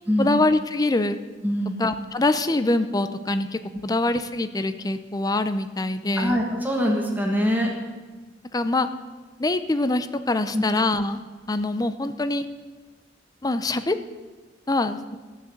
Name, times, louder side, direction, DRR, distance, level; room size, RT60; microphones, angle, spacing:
voice 1, 0.2-1.2 1.8-6.4 8.5-8.9 9.4-11.2 11.5-12.5 13.4-14.0 14.7-15.2, left 2 dB, 20° left, 11 dB, 0.6 m, -24 dB
voice 2, 1.4-1.8 6.2-7.7 10.5-10.6, equal, 10° right, 0 dB, 1.5 m, -23 dB
13.5 x 6.6 x 7.8 m, 1.3 s
head